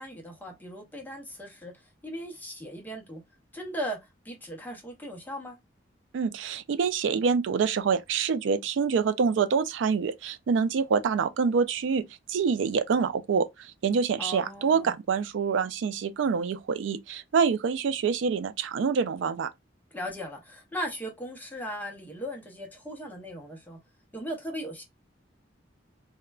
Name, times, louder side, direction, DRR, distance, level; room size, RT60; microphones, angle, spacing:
voice 1, 0.0-1.7 2.0-3.2 3.5-4.0 4.2-5.6 14.2-14.9 19.9-23.8 24.1-24.8, equal, 10° left, 0.6 m, -37 dB
voice 2, 6.1-19.5, right 6 dB, 90° right, 0.3 m, -26 dB
3.5 x 2.1 x 2.2 m
head